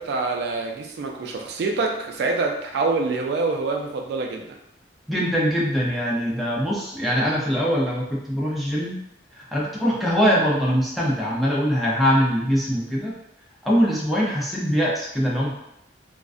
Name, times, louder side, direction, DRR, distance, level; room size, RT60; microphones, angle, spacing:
voice 1, 0.0-4.5, right 3 dB, 60° right, 2 dB, 0.3 m, -26 dB
voice 2, 5.1-9.0 9.3-13.1 13.6-15.5, equal, ahead, -5 dB, 0.4 m, -22 dB
2.4 x 2.1 x 2.4 m, 0.81 s
head